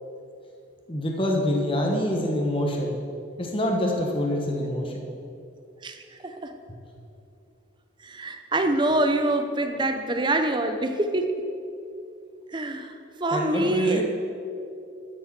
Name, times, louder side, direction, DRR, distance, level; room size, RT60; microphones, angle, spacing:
voice 1, 0.9-3.0 3.4-5.1 13.3-14.0, left 1 dB, 25° left, 0 dB, 1.1 m, -26 dB
voice 2, 5.8-6.5 8.0-11.3 12.5-12.9 13.2-14.0, right 2 dB, 25° right, 7 dB, 0.7 m, -25 dB
12.5 x 6.5 x 6.0 m, 2.6 s
head